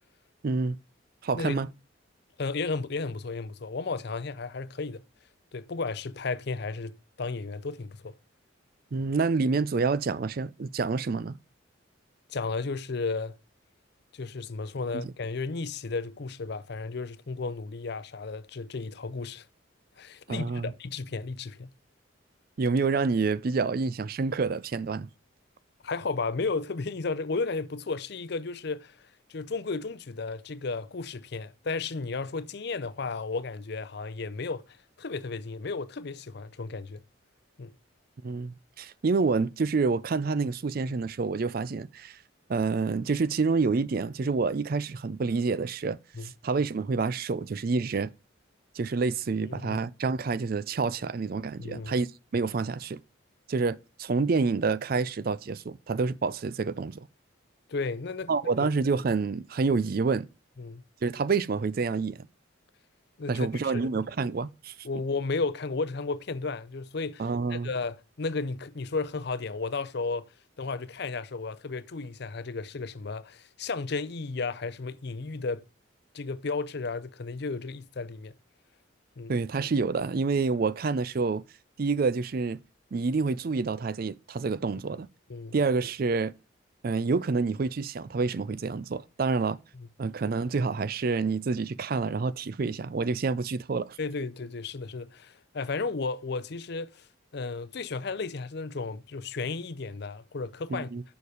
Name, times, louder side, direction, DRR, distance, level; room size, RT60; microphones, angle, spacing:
voice 1, 0.4-0.8 1.2-1.7 8.9-11.4 14.9-15.1 20.3-20.7 22.6-25.1 38.2-42.2 42.5-48.1 48.8-52.1 52.3-53.0 53.5-57.1 58.3-60.3 61.0-62.3 63.3-64.8 67.2-67.7 79.3-81.4 81.8-82.6 82.9-85.1 85.5-86.3 86.8-89.6 90.0-94.0 100.7-101.0, right 4 dB, 45° right, 0.4 m, -28 dB
voice 2, 2.4-5.0 5.5-8.1 12.3-13.4 14.1-19.5 20.0-21.7 25.8-34.6 35.0-37.0 37.6-37.7 46.1-46.3 49.5-49.8 51.6-51.9 57.7-58.3 58.6-58.7 60.6-60.8 63.2-63.9 64.8-67.2 67.5-70.3 70.6-75.6 76.1-78.3 79.2-79.3 85.3-85.6 89.8-89.9 94.0-97.1 97.3-100.9, left 4 dB, 55° left, 0.6 m, -33 dB
6.9 x 6.4 x 4.9 m
head